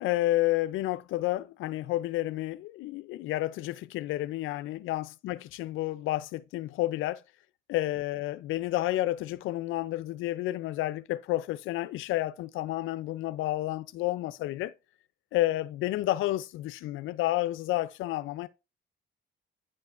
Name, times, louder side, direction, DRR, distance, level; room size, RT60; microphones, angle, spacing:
voice 1, 0.0-7.2 7.7-14.7 15.3-18.5, left 16 dB, 85° left, 0.4 m, -30 dB
9.6 x 5.3 x 2.4 m
cardioid pair, 90°, 20 cm